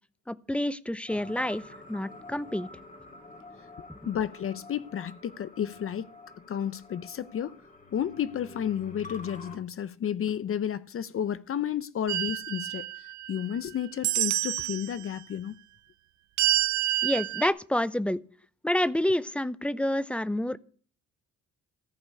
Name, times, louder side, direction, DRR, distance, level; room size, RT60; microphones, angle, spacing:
voice 1, 0.3-2.7 3.9-4.0 17.0-18.2 18.6-20.6, left 1 dB, 5° left, 0.6 m, -28 dB
sound 1, 1.1-9.6, left 3 dB, 25° left, 2.8 m, -48 dB
voice 2, 4.0-6.1 6.5-7.6 7.9-15.5, left 9 dB, 45° left, 0.6 m, -32 dB
sound 2, 12.1-13.6 14.0-14.9 16.4-17.5, right 16 dB, 70° right, 0.5 m, -28 dB
14.5 x 5.3 x 8.3 m
cardioid pair, 90°, 30 cm